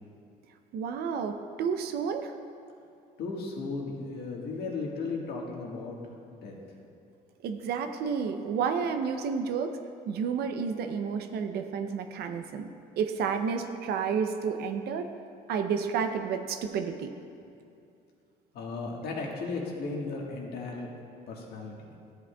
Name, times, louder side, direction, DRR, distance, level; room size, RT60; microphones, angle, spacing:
voice 1, 0.7-2.3 7.4-9.8 10.1-12.7 13.0-15.1 15.5-17.1, right 6 dB, 70° right, 7 dB, 0.6 m, -30 dB
voice 2, 3.2-6.0 6.3-6.6 18.5-20.9 21.3-21.9, left 3 dB, 70° left, -1 dB, 1.6 m, -35 dB
13.0 x 8.3 x 2.3 m, 2.5 s
cardioid pair, 110°, 17 cm